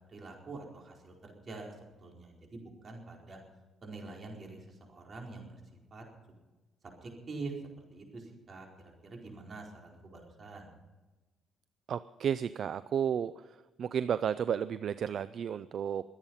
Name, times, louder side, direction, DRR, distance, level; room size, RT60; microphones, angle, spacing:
voice 1, 0.1-3.4 3.8-5.6 5.9-6.0 7.0-7.5 7.9-8.7 9.0-10.7, right 3 dB, 40° right, 0 dB, 4.6 m, -45 dB
voice 2, 11.9-16.0, right 8 dB, 60° right, 15 dB, 0.4 m, -32 dB
23.0 x 8.9 x 5.7 m, 1.2 s
cardioid pair, 90°, 0 cm